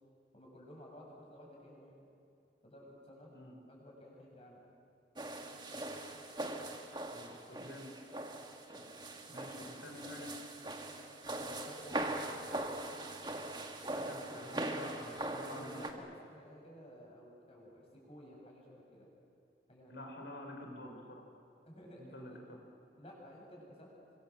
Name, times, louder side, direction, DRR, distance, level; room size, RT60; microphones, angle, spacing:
voice 1, 0.3-1.9 2.6-3.3 3.7-4.6 8.7-8.9 11.3-12.7 15.0-15.2 15.5-19.1 19.7-20.2 21.6-22.4 23.0-23.9, equal, 35° left, -2 dB, 7.9 m, -54 dB
sound 1, 5.2-15.9, right 2 dB, 25° right, 1.8 m, -41 dB
voice 2, 7.1-8.1 9.2-10.3 13.9-16.0 19.9-21.2 22.0-22.3, left 1 dB, 80° left, 2 dB, 5.0 m, -49 dB
28.5 x 25.0 x 7.6 m, 2.4 s
head